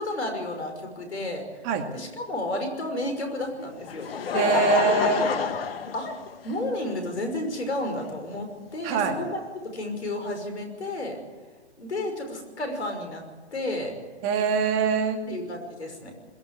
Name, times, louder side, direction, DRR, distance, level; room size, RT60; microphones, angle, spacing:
voice 1, 0.0-1.4 1.9-4.1 5.0-5.3 5.9-6.1 6.4-9.4 9.7-11.2 11.8-13.2 13.5-13.9 15.3-16.1, left 1 dB, 75° left, 5 dB, 5.7 m, -31 dB
Laughter, 3.6-6.8 7.6-7.7 9.2-9.3, left 7 dB, 60° left, 1.9 m, -28 dB
voice 2, 4.3-5.3 8.8-9.2 14.2-15.2, right 6 dB, 30° right, 5 dB, 2.3 m, -23 dB
21.5 x 15.0 x 8.4 m, 1.4 s
figure-of-eight pair, 125°, 33 cm